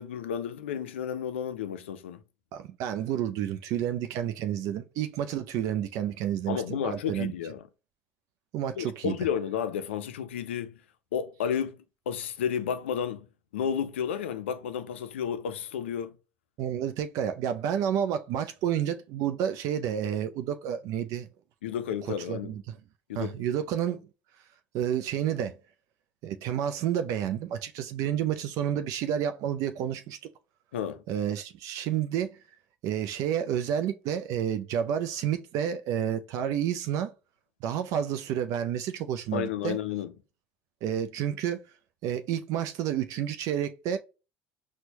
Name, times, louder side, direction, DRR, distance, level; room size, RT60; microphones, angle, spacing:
voice 1, 0.0-2.2 6.5-7.6 8.8-10.7 11.1-11.8 12.1-13.3 13.5-16.1 21.6-22.6 23.1-23.4 30.7-31.0 39.3-40.1, left 8 dB, 90° left, 0.4 m, -32 dB
voice 2, 2.5-7.3 8.5-9.2 16.6-21.3 22.3-22.8 23.2-24.1 24.7-25.5 26.2-30.2 31.1-32.4 32.8-37.1 37.6-39.8 40.8-41.6 42.0-44.0, right 9 dB, 60° right, 0.4 m, -30 dB
4.4 x 2.1 x 2.7 m
hypercardioid pair, 75°, 6 cm